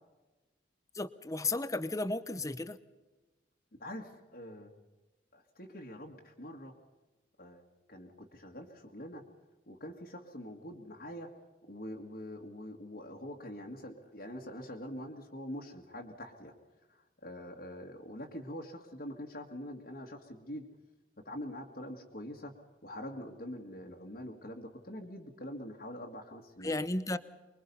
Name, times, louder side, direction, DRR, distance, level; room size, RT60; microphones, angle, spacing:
voice 1, 0.9-2.8 26.6-27.2, left 2 dB, 15° left, 0.8 m, -34 dB
voice 2, 3.8-4.7 5.3-6.7 7.4-9.2 9.7-11.3 11.6-16.5 16.9-20.6 21.2-22.5 22.8-26.8, equal, 50° left, 1.9 m, -44 dB
25.0 x 22.5 x 5.5 m
head